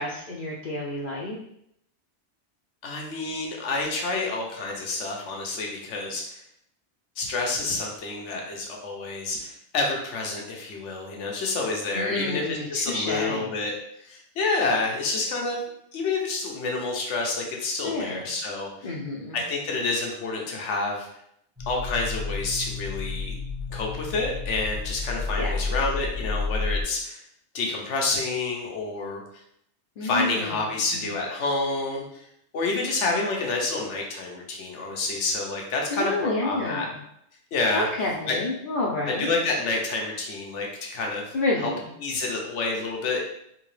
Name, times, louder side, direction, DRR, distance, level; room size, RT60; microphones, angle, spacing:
voice 1, 0.0-1.4 11.9-13.5 17.8-18.3 18.8-19.4 25.4-25.6 30.0-30.9 35.9-36.9 37.7-39.3 41.3-41.8, left 2 dB, 55° left, -3 dB, 0.6 m, -29 dB
voice 2, 2.8-6.4 7.2-13.7 14.0-15.6 15.9-18.9 19.3-21.1 21.7-23.3 23.7-27.2 27.5-29.2 30.0-32.2 32.5-36.9 37.5-37.9 38.3-38.4 39.1-41.7 42.0-43.2, left 3 dB, 90° left, 0 dB, 1.2 m, -28 dB
sound 1, 21.6-26.8, left 4 dB, 20° right, 1.1 m, -31 dB
3.7 x 2.9 x 3.2 m, 0.74 s
omnidirectional pair, 1.2 m